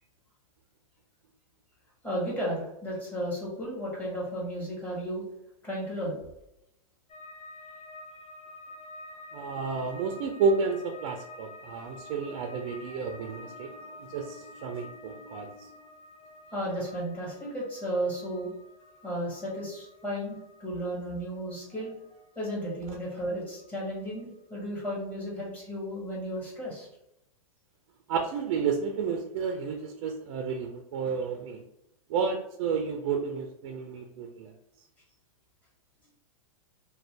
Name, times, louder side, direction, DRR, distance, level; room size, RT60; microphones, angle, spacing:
voice 1, 2.0-5.2 5.6-6.2 16.5-18.5 19.0-21.9 22.3-26.9, equal, 10° left, -6 dB, 1.3 m, -34 dB
sound 1, 7.1-24.2 24.5-25.2, left 2 dB, 30° left, 0.4 m, -49 dB
voice 2, 9.3-15.9 28.1-31.6 32.1-34.9, right 5 dB, 50° right, 4 dB, 0.4 m, -31 dB
2.6 x 2.2 x 3.2 m, 0.84 s
hypercardioid pair, 135°, 18 cm